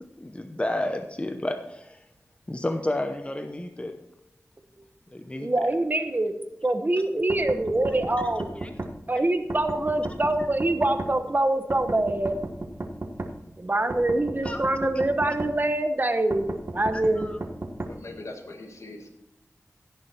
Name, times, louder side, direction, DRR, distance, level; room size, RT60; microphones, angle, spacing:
voice 1, 0.0-2.0 2.5-4.0 5.1-5.5 8.2-8.3 8.6-8.7 9.1-9.2 14.4-14.6 16.9-17.4, left 1 dB, 20° left, 7 dB, 0.8 m, -31 dB
voice 2, 5.3-6.3 6.6-8.5 9.1-12.4 13.2-13.3 13.6-16.5 16.7-17.3, right 2 dB, 35° right, 8 dB, 1.0 m, -24 dB
sound 1, 7.3-8.9 9.5-11.1 11.7-13.3 13.9-15.5 16.3-17.9, right 2 dB, 55° right, 1.3 m, -34 dB
voice 3, 17.9-19.1, left 2 dB, 70° left, 3 dB, 1.9 m, -41 dB
16.0 x 6.9 x 4.4 m, 0.87 s
wide cardioid pair, 70°, 5 cm